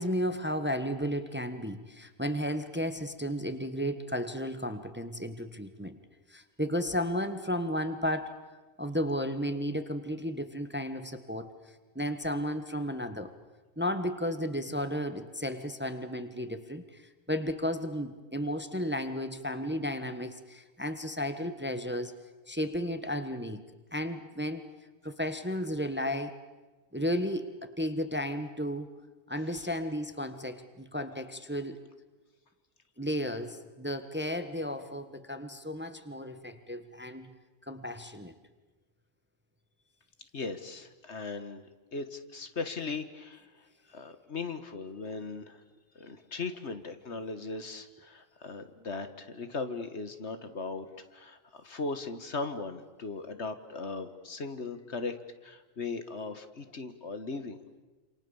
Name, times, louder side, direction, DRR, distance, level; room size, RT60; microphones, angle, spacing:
voice 1, 0.0-6.0 6.3-8.4 8.8-11.5 11.9-13.3 13.8-22.1 22.5-23.6 23.9-24.7 25.0-26.4 26.9-28.9 29.3-31.8 33.0-37.3 37.7-38.3, equal, 10° right, 9 dB, 1.3 m, -33 dB
voice 2, 40.3-43.5 43.9-45.6 46.0-55.2 55.4-57.6, left 4 dB, 60° left, 10 dB, 1.8 m, -38 dB
28.0 x 27.5 x 7.1 m, 1.2 s
omnidirectional pair, 1.3 m